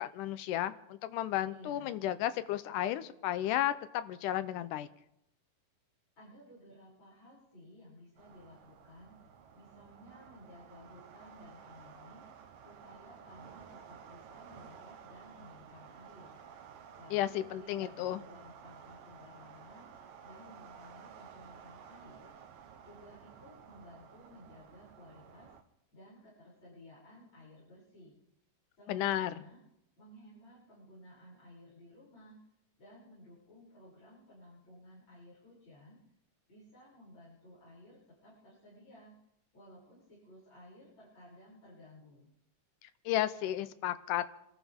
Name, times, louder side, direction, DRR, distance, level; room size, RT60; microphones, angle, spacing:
voice 1, 0.0-4.9 17.1-18.2 28.9-29.4 43.1-44.2, left 13 dB, 80° left, 12 dB, 2.2 m, -33 dB
voice 2, 1.5-2.0 6.2-9.2 9.5-12.2 12.6-16.4 16.9-19.9 20.2-22.3 22.8-25.5 25.9-28.1 28.8-29.6 30.0-32.4 32.8-36.0 36.5-39.1 39.5-42.3, left 1 dB, 35° left, -11 dB, 7.8 m, -56 dB
sound 1, 8.2-25.6, right 7 dB, 85° right, 2.7 m, -54 dB
27.5 x 13.0 x 3.7 m, 0.80 s
omnidirectional pair, 3.8 m